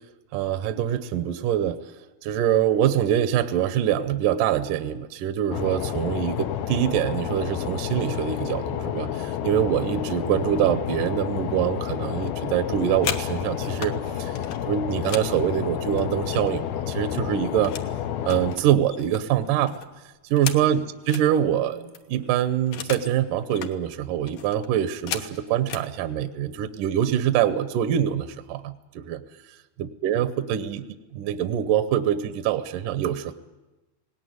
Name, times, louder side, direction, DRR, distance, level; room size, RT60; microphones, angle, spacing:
voice 1, 0.3-1.8 2.2-14.4 14.7-17.7 18.2-19.7 20.3-29.2 29.8-30.8 31.1-33.3, right 10 dB, 75° right, 10 dB, 2.0 m, -24 dB
sound 1, 5.5-18.6, left 10 dB, 85° left, 3.0 m, -30 dB
sound 2, 12.7-14.0 14.4-16.7 17.0-17.9 18.2-21.3 21.7-21.8 21.9-23.2 23.4-23.8 24.3-25.9 26.7-26.9 27.2-27.6 27.9-28.4, left 8 dB, 65° left, 2.5 m, -36 dB
sound 3, 18.3-18.7 19.4-19.8 20.4-20.8 21.5-21.9, right 3 dB, 20° left, 1.0 m, -47 dB
20.0 x 18.0 x 9.5 m, 1.1 s
omnidirectional pair, 4.6 m